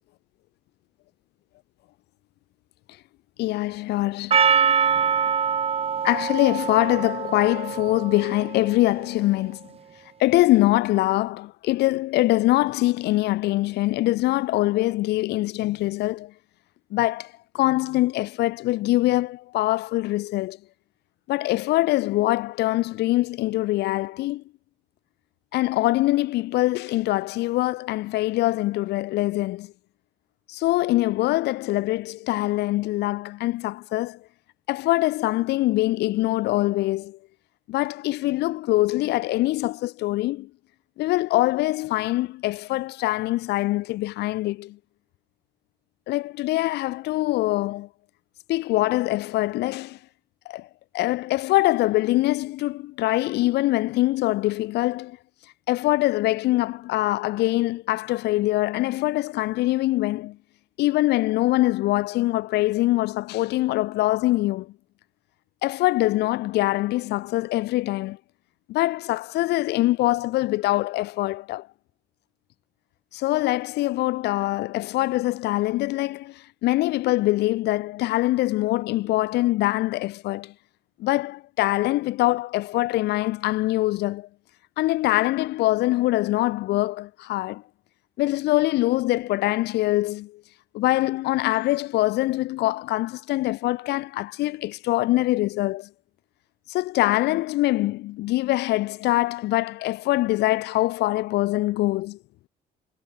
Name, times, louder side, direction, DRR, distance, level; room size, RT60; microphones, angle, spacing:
voice 1, 3.4-4.8 6.0-9.6 10.2-16.3 16.9-20.6 21.3-24.4 25.5-29.7 30.5-34.2 34.7-37.2 37.7-40.5 41.0-44.8 46.1-47.9 48.5-50.0 50.4-50.7 50.9-55.2 55.7-60.4 60.8-64.7 65.6-68.2 68.7-71.7 73.1-80.5 81.0-84.3 84.8-87.6 88.2-90.4 90.7-95.9 96.7-102.2, left 18 dB, 80° left, 1.3 m, -23 dB
Percussion, 4.3-8.9, right 7 dB, 35° right, 1.5 m, -24 dB
cardioid pair, 110°, 17 cm